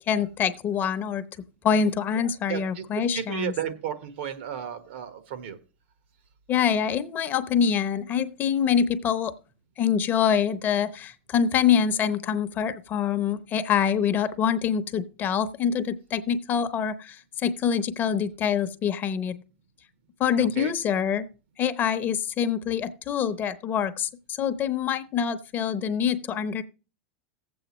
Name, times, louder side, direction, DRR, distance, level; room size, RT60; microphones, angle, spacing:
voice 1, 0.1-1.2 1.6-3.5 6.5-9.3 9.8-19.4 20.2-21.3 21.6-26.6, left 8 dB, 30° left, 10 dB, 0.8 m, -25 dB
voice 2, 2.1-2.8 3.1-5.6 20.4-20.7, right 9 dB, 70° right, 10 dB, 1.4 m, -34 dB
18.0 x 7.9 x 3.1 m, 0.34 s
hypercardioid pair, 120°, 6 cm